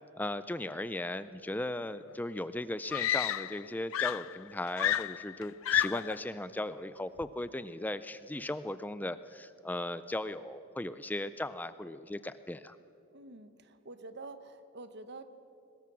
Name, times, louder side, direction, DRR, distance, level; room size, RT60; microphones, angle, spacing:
voice 1, 0.2-12.8, left 1 dB, 10° left, 13 dB, 0.4 m, -37 dB
Screaming, 2.1-2.2 2.9-3.7 3.9-6.2 7.2-7.5, left 11 dB, 75° left, 0.4 m, -31 dB
voice 2, 13.1-15.2, right 2 dB, 55° right, 11 dB, 1.1 m, -47 dB
23.0 x 20.0 x 6.1 m, 2.7 s
head